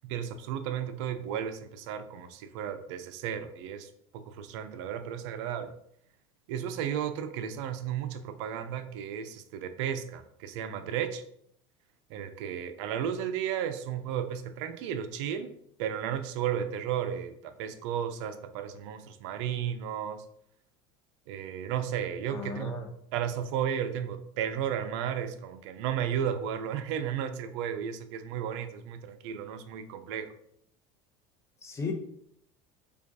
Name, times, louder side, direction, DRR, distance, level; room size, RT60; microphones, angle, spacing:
voice 1, 0.0-3.9 4.1-5.7 6.5-11.2 12.1-15.5 15.8-20.2 21.3-22.8 23.1-30.3, right 9 dB, 75° right, 10 dB, 0.4 m, -34 dB
voice 2, 22.3-22.9 31.6-31.9, left 4 dB, 20° left, 2 dB, 0.7 m, -35 dB
4.8 x 2.3 x 2.6 m, 0.71 s
supercardioid pair, 110°, 15 cm